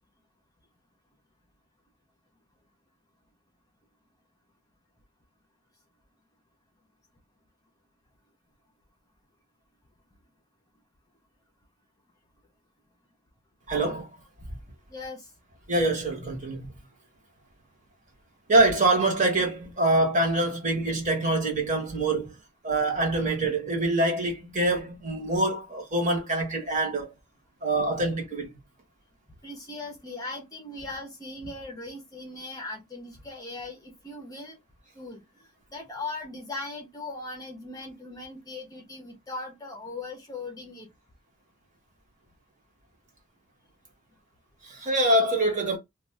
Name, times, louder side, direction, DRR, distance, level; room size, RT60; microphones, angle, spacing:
voice 1, 13.7-14.2 15.7-16.7 18.5-22.4 22.6-27.1 27.6-28.5 44.6-45.8, right 2 dB, 35° right, 1.0 m, -25 dB
voice 2, 14.9-15.3 29.4-34.6 34.9-35.2 35.7-40.9, left 2 dB, 15° left, 0.7 m, -39 dB
2.4 x 2.3 x 3.1 m
head